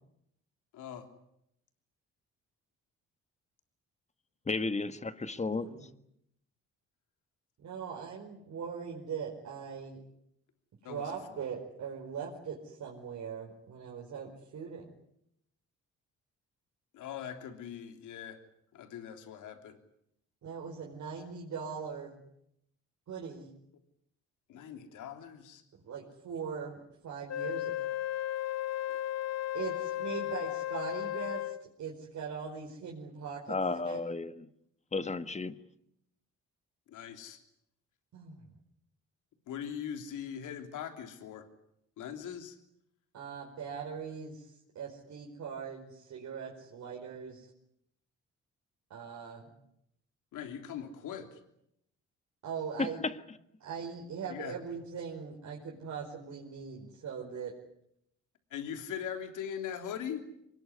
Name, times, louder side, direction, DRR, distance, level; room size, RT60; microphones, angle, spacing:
voice 1, 0.7-1.1 10.8-11.1 16.9-18.4 18.7-19.8 24.5-25.6 36.9-37.4 39.5-41.5 42.0-42.6 50.3-51.4 54.3-54.6 58.5-60.3, left 8 dB, 85° left, 7 dB, 3.3 m, -41 dB
voice 2, 4.5-5.9 33.5-34.5 34.9-35.6 52.8-53.1, left 3 dB, 20° left, 11 dB, 1.7 m, -33 dB
voice 3, 7.6-10.0 10.8-14.8 20.4-22.2 23.1-23.5 25.8-27.9 29.5-34.0 38.1-38.4 43.1-47.5 48.9-49.5 52.4-53.0 53.6-57.5, right 6 dB, 65° right, -2 dB, 5.0 m, -41 dB
Wind instrument woodwind instrument, 27.3-31.7, left 13 dB, 55° left, 1.1 m, -35 dB
24.0 x 20.5 x 9.9 m, 0.78 s
cardioid pair, 90°, 30 cm